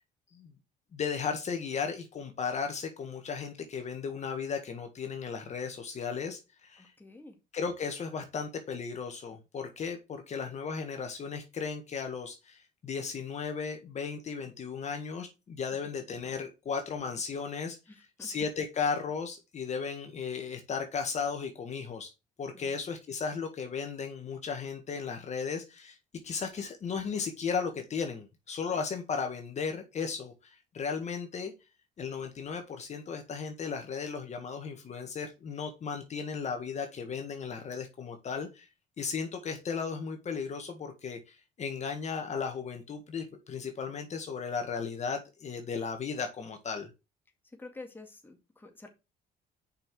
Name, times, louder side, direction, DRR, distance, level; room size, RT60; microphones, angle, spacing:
voice 1, 0.9-6.9 7.5-22.1 22.4-26.0 26.2-31.5 32.0-38.7 39.0-46.9, left 5 dB, 40° left, 5 dB, 1.6 m, -35 dB
voice 2, 6.8-7.4 17.9-18.3 22.5-22.8 47.6-48.9, left 3 dB, 10° left, 4 dB, 2.2 m, -49 dB
6.7 x 5.6 x 4.8 m, 0.26 s
cardioid pair, 110°, 17 cm